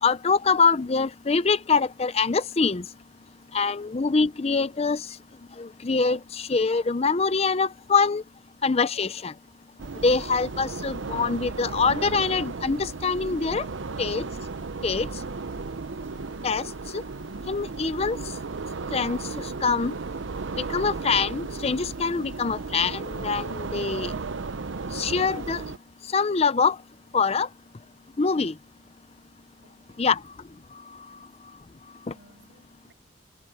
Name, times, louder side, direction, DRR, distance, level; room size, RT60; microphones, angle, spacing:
voice 1, 0.0-2.9 3.5-5.1 5.6-8.2 8.6-9.3 10.0-13.7 14.0-14.2 14.8-15.1 16.4-16.7 16.9-17.0 17.5-18.2 18.9-20.0 20.6-24.1 24.9-25.6 26.1-26.8 27.1-27.5 28.2-28.5 30.0-30.2, left 4 dB, 35° left, 0.5 m, -24 dB
voice 2, 3.4-3.9 29.6-30.2 30.8-31.4 32.0-32.9, right 1 dB, 65° right, 7.1 m, -61 dB
sound 1, 9.8-25.8, right 4 dB, 85° right, 0.7 m, -34 dB
head